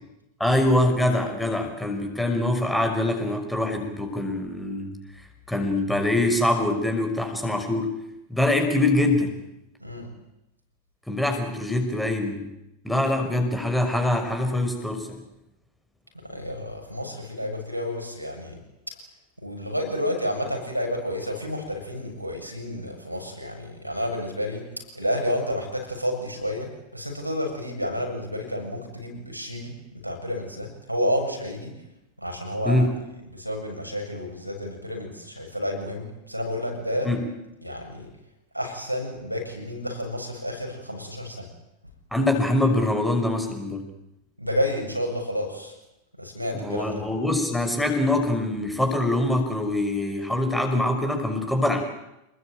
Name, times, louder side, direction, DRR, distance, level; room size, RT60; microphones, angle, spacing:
voice 1, 0.4-5.0 5.5-7.9 8.3-9.3 11.1-12.5 12.8-15.2 32.6-32.9 37.0-37.3 42.1-43.9 46.5-51.8, left 1 dB, 5° left, 4 dB, 5.7 m, -24 dB
voice 2, 16.3-18.6 19.4-24.7 24.9-31.7 32.2-32.9 33.3-37.1 37.6-38.1 38.5-41.5 44.4-45.7 46.2-47.0, equal, 90° right, 2 dB, 7.4 m, -30 dB
28.5 x 20.5 x 9.1 m, 0.88 s
figure-of-eight pair, 90°, 0 cm